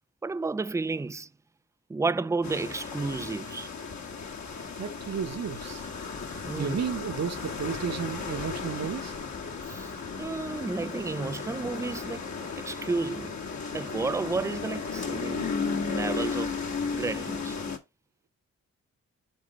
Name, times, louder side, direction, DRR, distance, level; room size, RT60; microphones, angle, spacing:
voice 1, 0.2-1.3 1.9-3.7 6.4-6.8 9.7-9.9 10.2-12.3 12.6-13.4 13.7-15.5 15.9-16.6 16.9-17.6, right 3 dB, 10° right, 0.4 m, -31 dB
sound 1, 2.4-17.8, left 5 dB, 55° left, 1.6 m, -35 dB
voice 2, 4.8-5.8 6.5-9.1, right 7 dB, 50° right, 1.1 m, -33 dB
7.4 x 3.8 x 4.2 m
supercardioid pair, 45°, 33 cm